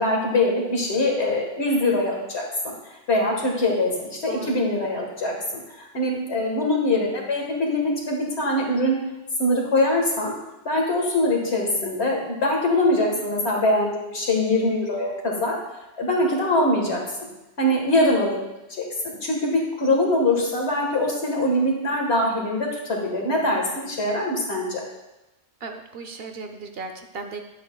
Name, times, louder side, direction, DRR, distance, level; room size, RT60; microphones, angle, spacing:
voice 1, 0.0-2.7 3.1-5.3 5.9-9.0 9.4-10.3 10.7-15.6 16.0-17.3 17.6-18.4 18.7-24.8, left 1 dB, 65° left, -1 dB, 1.9 m, -23 dB
voice 2, 25.6-27.4, right 4 dB, 60° right, 6 dB, 0.9 m, -36 dB
10.0 x 8.2 x 2.3 m, 0.99 s
omnidirectional pair, 1.2 m